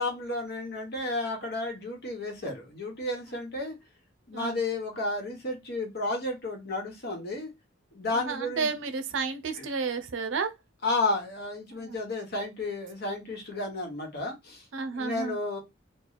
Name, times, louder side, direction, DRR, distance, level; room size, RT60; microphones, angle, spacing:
voice 1, 0.0-3.7 4.3-7.5 7.9-8.7 9.6-9.7 10.8-14.6 14.9-15.6, left 2 dB, 55° left, 1.2 m, -32 dB
voice 2, 8.1-10.5 11.7-12.0 14.7-15.4, right 4 dB, 75° right, 0.6 m, -32 dB
3.1 x 2.3 x 3.9 m
head